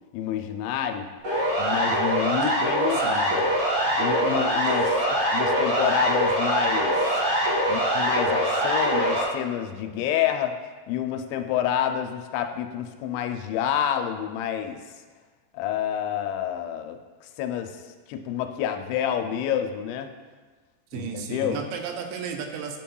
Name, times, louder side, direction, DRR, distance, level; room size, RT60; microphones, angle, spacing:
voice 1, 0.1-1.1 1.6-3.5 4.0-5.0 5.3-6.9 7.7-10.5 10.9-14.8 15.5-17.8 18.1-20.1 20.9-21.6, left 9 dB, 85° left, 6 dB, 2.8 m, -28 dB
Siren, 1.2-9.2, right 1 dB, 50° right, 1.7 m, -23 dB
voice 2, 2.9-3.3 20.9-22.8, right 6 dB, 85° right, 4 dB, 2.8 m, -33 dB
10.5 x 5.4 x 2.3 m, 1.4 s
omnidirectional pair, 5.2 m